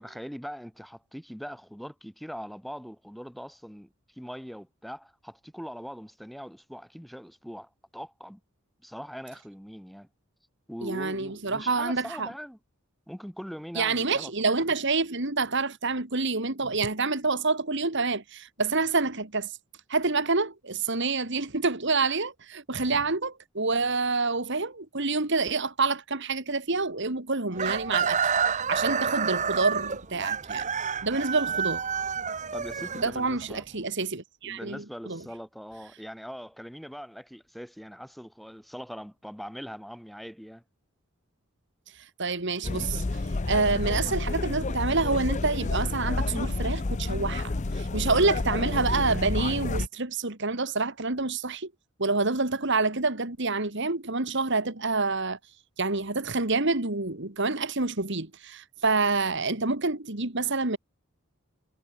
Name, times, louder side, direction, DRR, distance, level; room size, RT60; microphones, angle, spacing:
voice 1, 0.0-8.4 8.8-10.1 10.7-12.6 13.1-14.5 32.5-33.6 34.4-40.6, equal, ahead, 5.2 m, -41 dB
voice 2, 10.8-12.3 13.7-19.5 19.9-28.3 28.7-30.7 31.0-31.8 33.0-35.2 42.2-43.2 43.5-51.7 52.0-55.4 55.8-60.8, right 3 dB, 55° right, 2.4 m, -27 dB
Chicken rooster, 27.5-33.5, right 6 dB, 35° right, 1.1 m, -29 dB
sound 1, 42.6-49.9, left 2 dB, 35° left, 0.6 m, -30 dB
head